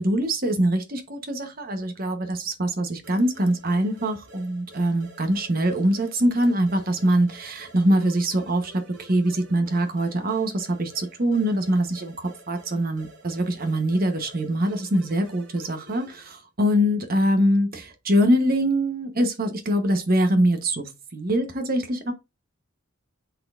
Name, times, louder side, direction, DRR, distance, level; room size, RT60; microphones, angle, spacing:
voice 1, 0.0-22.1, right 1 dB, 45° right, 1.1 m, -23 dB
sound 1, 3.0-16.4, right 1 dB, 65° right, 3.8 m, -49 dB
9.4 x 4.1 x 2.5 m
head